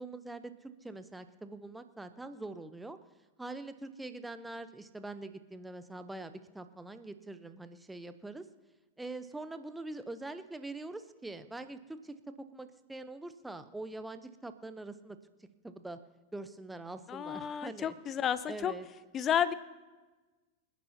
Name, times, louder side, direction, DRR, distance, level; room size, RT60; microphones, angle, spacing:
voice 1, 0.0-3.0 3.4-8.5 9.0-15.2 15.6-16.0 16.3-17.9 18.5-18.9, right 2 dB, 5° right, 10 dB, 0.8 m, -44 dB
voice 2, 17.1-18.7 19.1-19.5, left 9 dB, 30° left, 16 dB, 0.7 m, -31 dB
27.0 x 10.5 x 2.9 m, 1.2 s
figure-of-eight pair, 90°, 0 cm